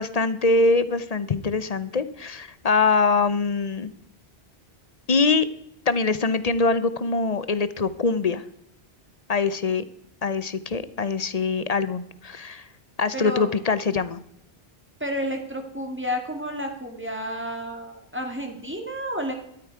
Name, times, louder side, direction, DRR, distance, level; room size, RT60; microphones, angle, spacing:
voice 1, 0.0-3.9 5.1-5.4 5.9-8.4 9.3-9.8 10.2-12.7 13.0-14.2, left 4 dB, 40° left, 14 dB, 0.8 m, -23 dB
voice 2, 13.1-13.6 15.0-19.3, equal, 10° right, 3 dB, 2.1 m, -31 dB
13.0 x 12.5 x 4.6 m, 0.77 s
omnidirectional pair, 1.1 m